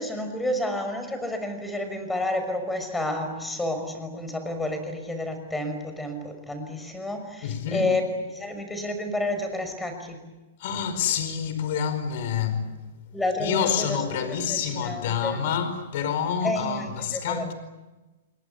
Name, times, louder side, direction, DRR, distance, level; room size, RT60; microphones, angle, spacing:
voice 1, 0.0-8.0 8.3-10.2 13.1-14.0 14.5-15.4 16.4-17.5, left 1 dB, 5° left, 5.8 m, -30 dB
voice 2, 7.4-7.9 10.6-12.8 13.4-17.5, left 7 dB, 60° left, 4.7 m, -27 dB
29.0 x 21.5 x 8.2 m
hypercardioid pair, 145°, 0 cm